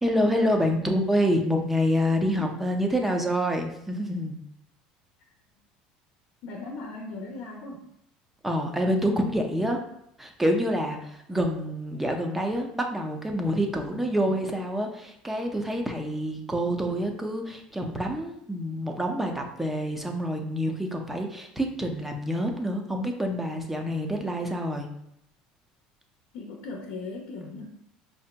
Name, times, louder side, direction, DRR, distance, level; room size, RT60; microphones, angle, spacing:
voice 1, 0.0-4.4 8.4-9.8 10.2-24.9, equal, 5° right, 3 dB, 0.5 m, -27 dB
voice 2, 6.4-7.8 26.3-27.6, left 3 dB, 70° left, 0 dB, 0.7 m, -38 dB
4.7 x 2.7 x 2.2 m, 0.75 s
supercardioid pair, 105°, 3 cm